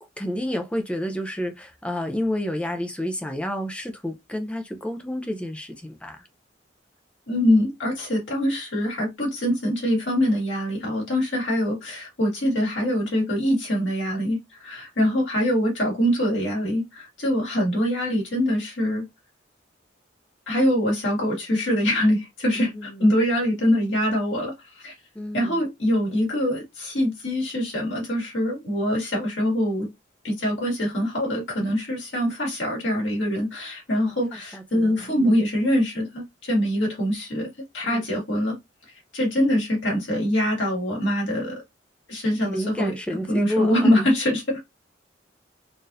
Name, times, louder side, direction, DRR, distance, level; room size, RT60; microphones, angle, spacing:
voice 1, 0.2-6.2 22.6-23.1 25.2-25.6 33.9-34.0 34.5-35.3 37.9-38.0 42.4-44.1, left 1 dB, 5° left, 0.4 m, -30 dB
voice 2, 7.3-19.0 20.5-24.9 25.3-29.9 30.2-38.6 39.1-41.6 42.1-42.9 43.3-44.6, equal, 80° left, 1.9 m, -24 dB
3.9 x 2.4 x 2.6 m
head